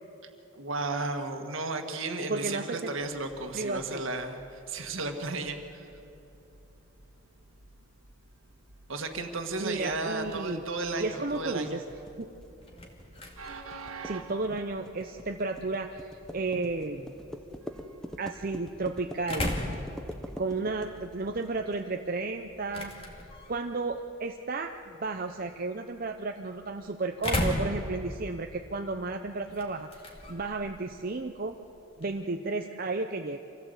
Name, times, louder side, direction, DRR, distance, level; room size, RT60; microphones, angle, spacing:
voice 1, 0.5-5.9 8.9-11.8, right 3 dB, 65° right, 5 dB, 1.8 m, -34 dB
voice 2, 2.3-2.9 3.5-4.0 9.6-10.6 11.0-11.8 12.2-12.3 14.0-17.1 18.2-19.6 20.4-22.9 23.5-31.5 32.0-33.4, right 3 dB, 40° right, 5 dB, 0.7 m, -33 dB
Train, 3.0-21.5, right 3 dB, 80° right, 1.8 m, -52 dB
sound 1, 10.2-21.8, equal, 5° left, 1.0 m, -44 dB
sound 2, 12.4-32.2, left 1 dB, 25° left, 2.2 m, -39 dB
26.0 x 16.5 x 8.1 m, 2.9 s
head